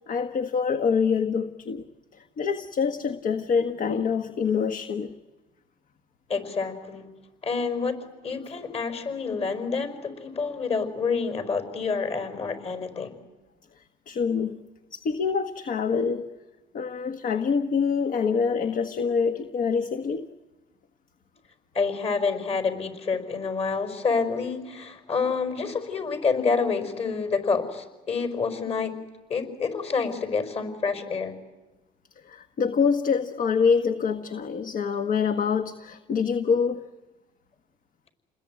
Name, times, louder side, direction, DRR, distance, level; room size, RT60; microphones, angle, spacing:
voice 1, 0.1-1.9 2.1-5.1 14.1-14.6 14.9-16.3 16.7-20.3 32.2-36.8, left 6 dB, 55° left, 7 dB, 1.5 m, -25 dB
voice 2, 6.3-7.1 7.4-8.0 8.2-13.2 21.7-28.9 29.3-31.3, left 5 dB, 40° left, 9 dB, 5.2 m, -28 dB
29.5 x 21.0 x 9.1 m, 1.1 s
cardioid pair, 110°, 17 cm